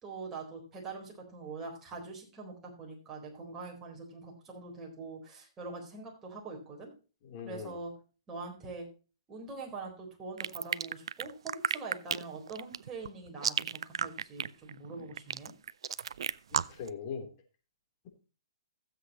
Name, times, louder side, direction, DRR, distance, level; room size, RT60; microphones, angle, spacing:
voice 1, 0.0-6.9 7.4-7.9 8.3-8.9 9.3-15.5, right 3 dB, 15° right, -1 dB, 4.1 m, -43 dB
voice 2, 7.2-7.8 16.5-17.3, left 6 dB, 40° left, 3 dB, 3.2 m, -40 dB
kindersurprise frequency, 10.4-16.9, right 8 dB, 70° right, 0.4 m, -33 dB
15.5 x 7.9 x 2.9 m, 0.34 s
hypercardioid pair, 135°, 3 cm